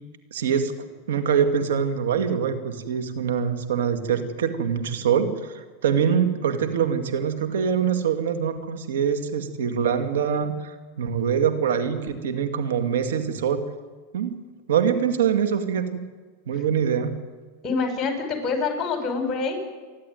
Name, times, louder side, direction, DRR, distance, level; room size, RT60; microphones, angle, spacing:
voice 1, 0.3-0.7 1.1-13.6 14.1-14.3 14.7-16.0 16.5-17.1, right 7 dB, 85° right, 7 dB, 2.3 m, -24 dB
voice 2, 17.6-19.6, left 4 dB, 25° left, 5 dB, 5.5 m, -26 dB
28.5 x 11.5 x 9.4 m, 1.4 s
supercardioid pair, 135°, 0 cm